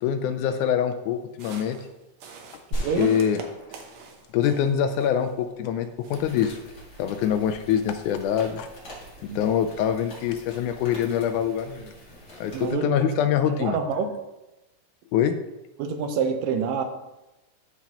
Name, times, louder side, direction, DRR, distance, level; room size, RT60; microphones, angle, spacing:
voice 1, 0.0-1.8 3.0-3.4 4.3-6.6 7.0-8.7 9.4-11.9 12.4-13.8 15.1-15.3, left 9 dB, 80° left, 7 dB, 1.9 m, -24 dB
sound 1, 1.3-5.4 5.8-6.8, right 4 dB, 70° right, 1.9 m, -45 dB
sound 2, 2.7-5.0, right 1 dB, 65° left, 4.1 m, -35 dB
voice 2, 2.7-3.2 9.3-9.4 12.5-13.1 13.5-14.1 15.8-16.8, right 5 dB, 85° right, 7 dB, 2.4 m, -27 dB
sound 3, 6.1-12.7, equal, 40° left, 2.6 m, -46 dB
14.0 x 4.7 x 2.9 m, 0.99 s
omnidirectional pair, 3.8 m